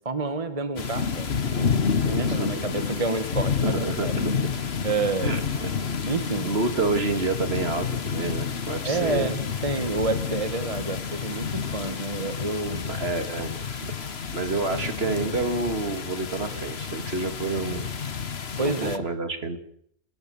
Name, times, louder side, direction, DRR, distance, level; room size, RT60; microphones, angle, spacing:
voice 1, 0.0-4.4 4.8-5.4 6.1-6.5 8.8-12.8 18.6-19.0, right 3 dB, 30° right, 10 dB, 1.4 m, -29 dB
sound 1, 0.8-19.0, left 6 dB, 55° left, 1.5 m, -29 dB
voice 2, 2.2-2.7 3.6-4.5 5.2-5.7 6.4-9.3 12.9-13.5 13.8-13.9 14.3-17.9 18.6-19.6, right 3 dB, 55° right, 8 dB, 2.4 m, -29 dB
28.0 x 18.5 x 7.0 m, 0.68 s
omnidirectional pair, 1.3 m